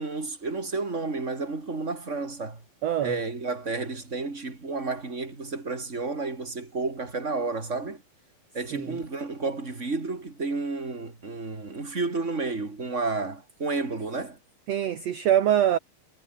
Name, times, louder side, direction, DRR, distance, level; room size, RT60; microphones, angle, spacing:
voice 1, 0.0-2.6 3.0-8.0 8.5-14.4, right 3 dB, 20° right, 4.1 m, -31 dB
voice 2, 2.8-3.2 8.7-9.0 14.7-15.8, right 10 dB, 55° right, 2.3 m, -24 dB
omnidirectional pair, 4.1 m